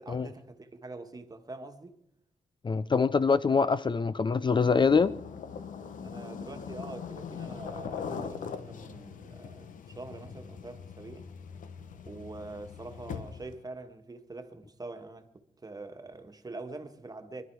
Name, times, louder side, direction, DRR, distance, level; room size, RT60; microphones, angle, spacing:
voice 1, 0.0-2.0 6.0-11.3 12.0-17.4, right 2 dB, 30° right, 1.6 m, -44 dB
voice 2, 2.6-5.1, left 5 dB, 35° left, 0.5 m, -24 dB
sound 1, 4.5-13.6, left 6 dB, 85° left, 1.0 m, -41 dB
24.5 x 11.5 x 4.7 m
cardioid pair, 75°, 13 cm